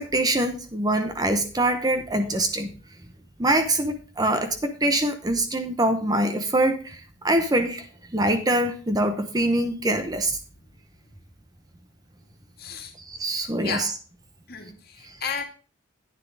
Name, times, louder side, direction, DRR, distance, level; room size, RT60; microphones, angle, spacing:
voice 1, 0.0-2.7 3.4-7.9 8.1-10.4 13.1-13.9 15.1-15.2, right 1 dB, 20° right, 8 dB, 0.8 m, -24 dB
voice 2, 12.6-12.9 13.6-13.9 14.5-15.4, left 6 dB, 50° left, 3 dB, 2.1 m, -33 dB
10.5 x 9.3 x 3.4 m, 0.36 s
head